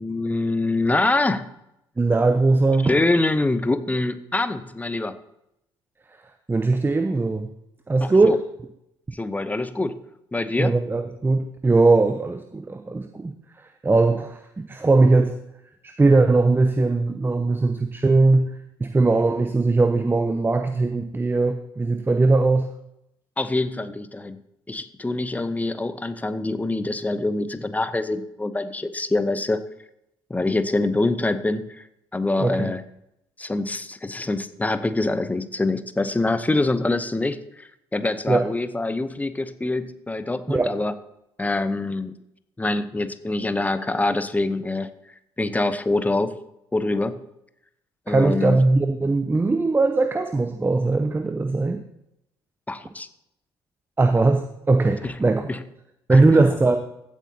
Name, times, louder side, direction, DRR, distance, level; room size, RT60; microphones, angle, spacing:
voice 1, 0.0-1.5 2.8-5.1 8.0-8.4 9.1-10.0 10.3-10.7 23.4-24.4 24.7-29.6 30.3-31.8 32.1-32.8 33.4-40.9 41.4-42.1 42.6-44.9 45.4-46.4 46.7-47.2 48.1-48.6 52.7-53.1 55.0-55.1 55.5-55.6 56.1-56.5, left 2 dB, 10° left, 12 dB, 0.8 m, -25 dB
voice 2, 2.0-3.0 6.5-7.5 7.9-8.4 10.6-14.4 14.7-15.3 15.8-18.5 18.8-22.7 32.4-32.7 38.3-38.5 40.5-40.7 48.1-51.8 54.0-55.5 56.1-56.8, right 3 dB, 15° right, 8 dB, 0.7 m, -20 dB
15.5 x 8.2 x 2.8 m, 0.82 s
figure-of-eight pair, 50°, 13 cm